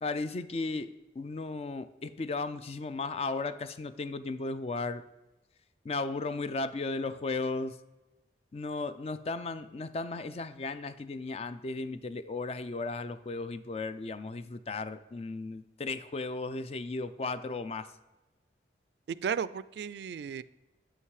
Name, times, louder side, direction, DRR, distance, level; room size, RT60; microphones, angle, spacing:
voice 1, 0.0-5.0 5.8-7.8 8.5-17.9, left 3 dB, 35° left, 12 dB, 0.4 m, -35 dB
voice 2, 19.1-20.4, right 7 dB, 70° right, 17 dB, 0.3 m, -34 dB
8.7 x 5.6 x 4.8 m, 1.1 s
head